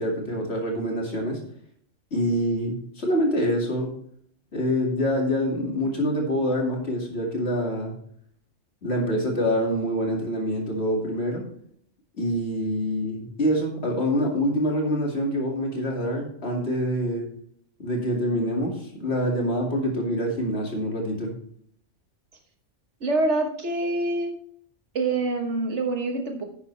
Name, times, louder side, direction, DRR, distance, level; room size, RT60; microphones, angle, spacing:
voice 1, 0.0-1.4 2.1-3.9 4.5-7.9 8.8-11.4 12.2-17.3 17.8-21.3, equal, 60° left, 0 dB, 2.6 m, -26 dB
voice 2, 23.0-24.4 25.0-26.4, right 2 dB, 65° right, 4 dB, 1.7 m, -25 dB
10.5 x 8.6 x 3.4 m, 0.64 s
omnidirectional pair, 1.3 m